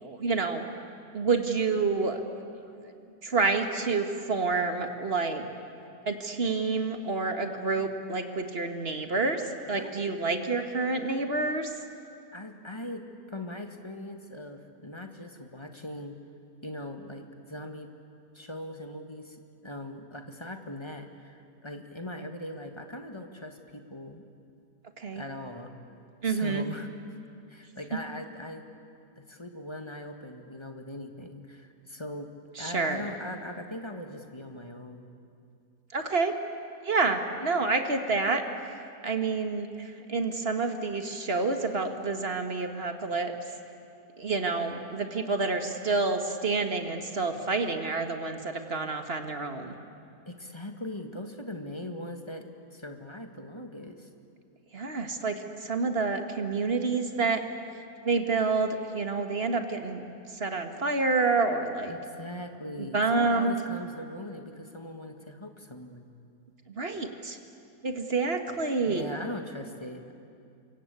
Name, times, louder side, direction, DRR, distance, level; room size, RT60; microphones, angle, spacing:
voice 1, 0.0-0.6 1.1-2.2 3.2-5.5 6.1-9.4 9.7-11.7 25.0-25.2 26.2-26.7 32.6-33.1 35.9-36.3 36.8-38.4 39.0-43.3 44.2-49.7 54.7-57.4 58.0-60.0 60.3-61.9 62.8-63.5 66.7-67.4 67.8-69.1, right 4 dB, 40° right, 6 dB, 1.9 m, -28 dB
voice 2, 12.3-16.2 16.6-17.9 18.3-24.2 25.1-25.7 26.2-26.9 27.5-28.6 29.2-32.3 32.6-35.1 50.3-52.5 52.7-54.1 61.9-66.0 68.9-70.1, left 1 dB, 20° left, 5 dB, 1.7 m, -40 dB
28.5 x 24.5 x 8.4 m, 2.5 s
omnidirectional pair, 1.7 m